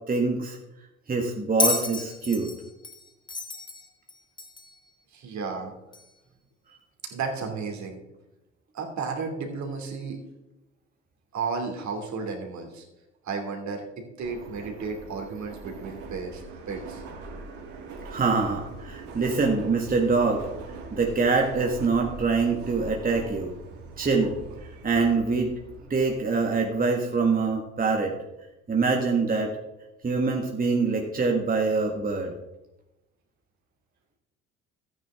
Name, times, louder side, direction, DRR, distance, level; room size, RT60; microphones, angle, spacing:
voice 1, 0.1-0.6 1.1-2.5 18.0-23.5 24.0-24.4 24.8-25.5 25.9-28.1 28.7-29.5 30.0-32.3, right 4 dB, 25° right, 1 dB, 1.7 m, -24 dB
Bell, 1.6-4.8 5.9-6.0, left 2 dB, 15° left, 1.3 m, -30 dB
voice 2, 5.1-5.7 7.0-8.0 8.7-10.2 11.3-12.9 13.2-17.0, right 4 dB, 50° right, 2 dB, 2.8 m, -33 dB
Subway metro underground, 14.2-26.2, right 3 dB, 65° right, 3.0 m, -42 dB
13.5 x 9.4 x 3.7 m, 0.97 s
hypercardioid pair, 55°, 36 cm